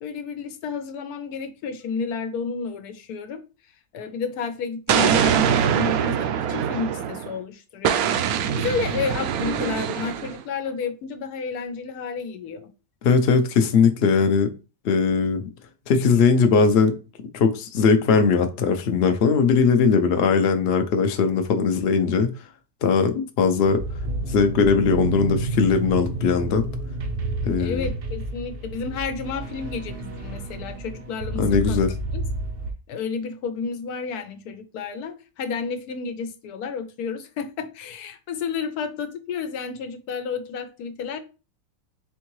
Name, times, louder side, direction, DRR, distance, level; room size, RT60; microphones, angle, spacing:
voice 1, 0.0-3.4 3.9-12.7 27.6-32.2 32.9-41.2, left 5 dB, 85° left, 1.2 m, -31 dB
Explosion, 4.9-7.3 7.8-10.4, right 8 dB, 75° right, 1.0 m, -23 dB
voice 2, 13.0-14.5 14.8-15.5 15.9-16.9 17.3-22.3 22.8-23.8 24.3-26.6 27.4-27.9 31.4-31.9, left 5 dB, 60° left, 0.7 m, -19 dB
sound 1, 23.6-32.7, right 2 dB, 55° right, 0.6 m, -30 dB
4.3 x 3.6 x 3.1 m
omnidirectional pair, 1.6 m